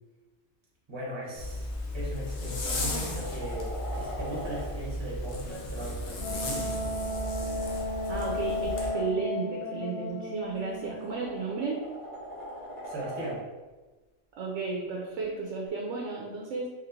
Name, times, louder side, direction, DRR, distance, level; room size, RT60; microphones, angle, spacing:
voice 1, 0.9-1.7 1.9-6.8 12.8-13.4, equal, 25° right, -5 dB, 0.9 m, -38 dB
Zipper (clothing), 1.4-8.9, left 1 dB, 65° left, 0.9 m, -35 dB
sound 1, 2.4-4.7 6.3-9.1 10.6-13.4 15.7-15.8, equal, 45° left, 1.2 m, -42 dB
Wind instrument woodwind instrument, 6.2-11.7, left 2 dB, 25° left, 1.3 m, -34 dB
voice 2, 8.1-11.9 14.4-16.7, right 4 dB, 75° right, -2 dB, 0.9 m, -33 dB
4.3 x 2.9 x 2.6 m, 1.3 s
omnidirectional pair, 1.3 m